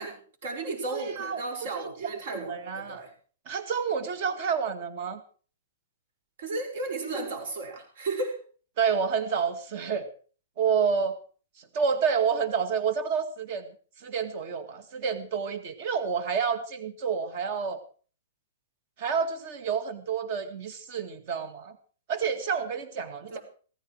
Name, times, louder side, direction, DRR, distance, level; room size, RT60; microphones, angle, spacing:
voice 1, 0.0-3.1 6.4-8.4 23.3-23.4, right 3 dB, 55° right, 3 dB, 6.4 m, -34 dB
voice 2, 0.9-1.4 2.3-3.0 3.5-5.2 8.8-10.1 10.6-11.2 11.6-13.7 14.0-17.8 19.0-21.8 22.1-23.4, right 6 dB, 40° right, 10 dB, 2.1 m, -29 dB
16.0 x 14.5 x 4.8 m, 0.42 s
hypercardioid pair, 165°, 0 cm